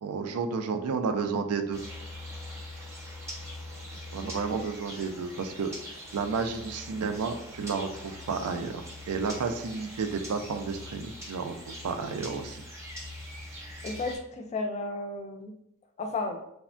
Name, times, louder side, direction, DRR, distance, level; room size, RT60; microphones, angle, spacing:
voice 1, 0.0-1.8 4.1-5.7 6.1-12.6, right 5 dB, 90° right, 7 dB, 0.4 m, -31 dB
sound 1, 1.7-14.2, left 1 dB, 10° right, 0.6 m, -43 dB
voice 2, 13.8-15.5 16.0-16.4, left 3 dB, 30° left, 5 dB, 0.3 m, -33 dB
3.3 x 2.1 x 2.4 m, 0.78 s
head